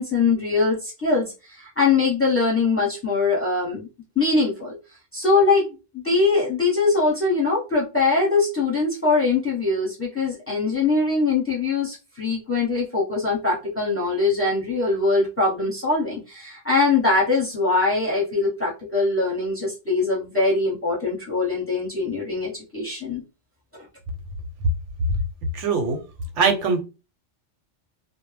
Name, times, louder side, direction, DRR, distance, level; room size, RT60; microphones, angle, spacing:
voice 1, 0.0-3.9 4.1-4.8 5.1-5.7 5.9-23.2 23.7-23.8, left 3 dB, 15° left, -4 dB, 0.8 m, -22 dB
voice 2, 25.5-26.0 26.3-26.8, right 5 dB, 85° right, 4 dB, 0.9 m, -21 dB
2.1 x 2.0 x 3.2 m, 0.30 s
omnidirectional pair, 1.2 m